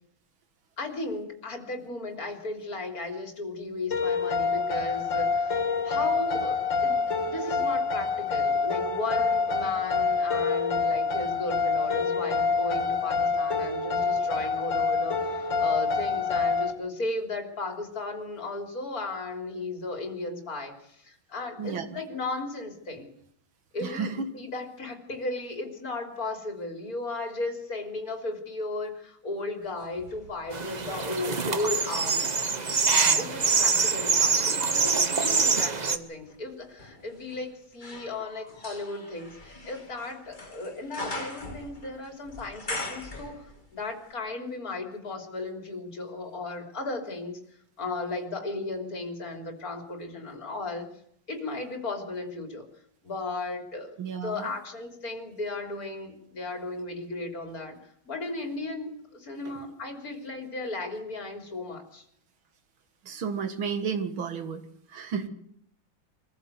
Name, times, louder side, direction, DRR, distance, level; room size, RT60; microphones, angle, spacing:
voice 1, 0.8-23.1 23.7-32.3 33.1-47.4 47.8-50.9 51.3-52.7 53.0-57.8 58.1-62.1, left 2 dB, 45° left, 4 dB, 3.7 m, -35 dB
sound 1, 3.9-16.7, left 4 dB, 70° left, 3.2 m, -26 dB
voice 2, 21.6-22.0 23.8-24.3 33.0-33.3 54.0-54.6 59.5-59.6 63.0-65.3, right 6 dB, 90° right, 8 dB, 2.6 m, -33 dB
sound 2, 29.7-31.9 32.5-43.8 44.1-44.2, left 2 dB, 25° left, 2.9 m, -42 dB
sound 3, 30.5-36.0, right 5 dB, 35° right, 0.7 m, -25 dB
24.0 x 15.0 x 8.1 m, 0.70 s
omnidirectional pair, 2.2 m